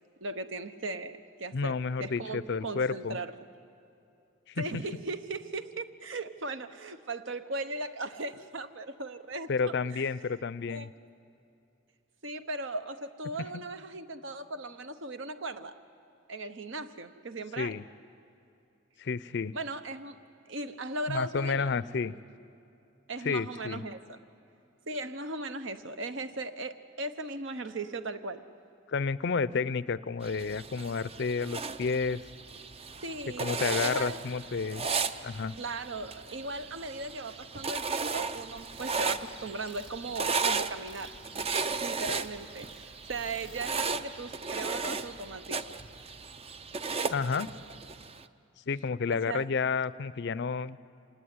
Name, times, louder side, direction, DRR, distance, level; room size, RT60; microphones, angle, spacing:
voice 1, 0.2-3.4 4.6-9.5 9.9-10.2 10.7-10.9 12.2-15.8 16.3-17.8 19.5-20.2 20.5-21.8 23.1-24.2 24.9-28.4 33.0-33.5 33.8-34.2 35.6-41.2 41.8-45.7 49.1-49.5, right 2 dB, 65° right, 10 dB, 1.0 m, -38 dB
voice 2, 1.5-3.2 4.5-4.6 9.5-10.9 17.6-17.8 19.0-19.5 21.1-22.1 23.2-23.8 28.9-32.2 33.4-34.9 35.2-35.5 47.1-47.5 48.7-50.8, left 5 dB, 60° left, 17 dB, 0.5 m, -30 dB
sound 1, 30.2-48.2, right 4 dB, 30° right, 0.6 m, -35 dB
sound 2, 38.5-43.8, right 2 dB, 85° right, 3.9 m, -54 dB
26.0 x 18.5 x 9.5 m, 2.7 s
head